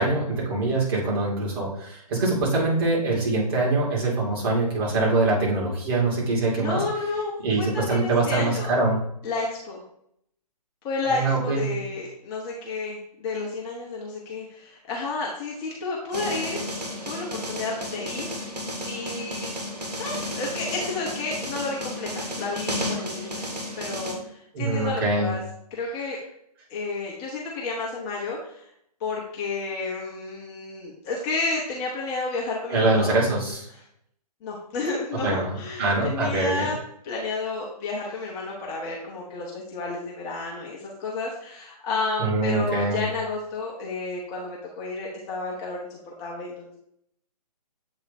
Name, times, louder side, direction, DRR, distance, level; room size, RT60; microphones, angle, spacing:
voice 1, 0.0-6.8 7.4-9.0 11.1-11.7 24.5-25.3 32.7-33.7 35.2-36.7 42.2-43.0, right 2 dB, 35° right, -5 dB, 2.6 m, -24 dB
voice 2, 6.5-7.3 7.6-8.7 9.2-9.8 10.8-16.7 17.0-18.5 18.9-19.6 20.0-25.4 25.7-26.2 26.7-28.7 29.0-33.1 34.4-36.8 37.0-46.8, left 3 dB, 20° left, -3 dB, 0.8 m, -31 dB
sound 1, 16.1-24.2, left 1 dB, 80° right, 1.7 m, -33 dB
7.9 x 2.9 x 4.2 m, 0.73 s
figure-of-eight pair, 135°, 20 cm